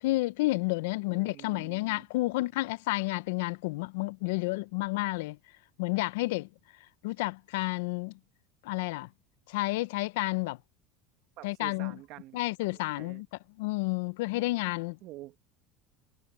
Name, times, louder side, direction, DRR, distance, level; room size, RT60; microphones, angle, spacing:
voice 1, 0.0-5.4 5.8-6.5 7.0-8.1 8.6-9.1 9.5-10.6 11.4-11.9 12.3-13.3 13.6-15.0, left 21 dB, 85° left, 0.4 m, -30 dB
voice 2, 1.1-2.1 11.4-13.2 15.0-15.4, right 16 dB, 50° right, 1.3 m, -48 dB
cardioid pair, 155°, 0 cm